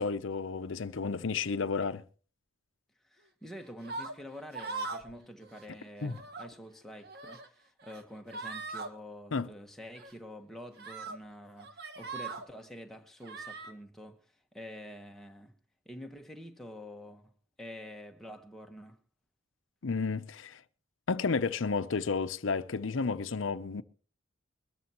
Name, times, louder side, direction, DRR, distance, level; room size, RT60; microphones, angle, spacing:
voice 1, 0.0-2.0 6.0-6.1 9.3-9.5 19.8-20.6 21.1-23.8, left 4 dB, 65° left, 0.6 m, -32 dB
voice 2, 3.0-15.5 15.8-17.3 17.6-19.0, equal, ahead, 1.2 m, -47 dB
sound 1, 3.8-4.1 4.5-5.1 5.4-5.6 6.0-6.5 7.0-7.5 7.8-8.0 8.3-8.9 10.0-10.1 10.8-11.2 11.6-12.5 13.2-13.7, right 3 dB, 50° right, 1.5 m, -40 dB
22.5 x 13.0 x 3.0 m
head